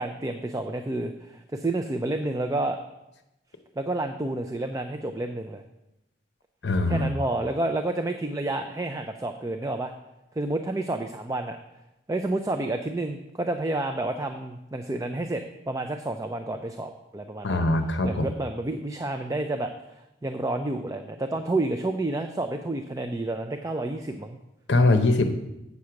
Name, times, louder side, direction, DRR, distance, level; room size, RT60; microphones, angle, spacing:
voice 1, 0.0-2.8 3.8-5.6 6.9-9.9 10.4-11.6 12.1-17.7 18.0-24.4, right 2 dB, 15° right, 6 dB, 0.4 m, -30 dB
voice 2, 6.6-7.1 17.4-18.3 24.7-25.3, left 2 dB, 65° left, 7 dB, 0.8 m, -22 dB
8.3 x 6.4 x 5.8 m, 0.93 s
head